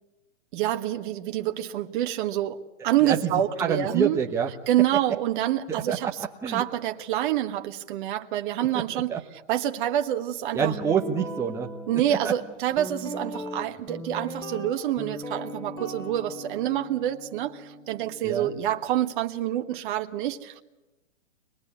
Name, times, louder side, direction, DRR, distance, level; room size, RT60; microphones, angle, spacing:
voice 1, 0.5-4.2 4.7-6.1 6.5-9.1 9.5-10.7 11.9-20.6, right 12 dB, 45° right, 1.5 m, -27 dB
voice 2, 3.0-3.3 3.6-4.5 5.7-6.1 6.4-6.6 8.9-9.2 10.5-11.7 12.1-12.3 18.2-18.5, right 7 dB, 10° right, 1.0 m, -27 dB
Guitar, 10.6-18.8, equal, 10° left, 2.5 m, -39 dB
25.5 x 20.0 x 8.5 m
hypercardioid pair, 145°, 36 cm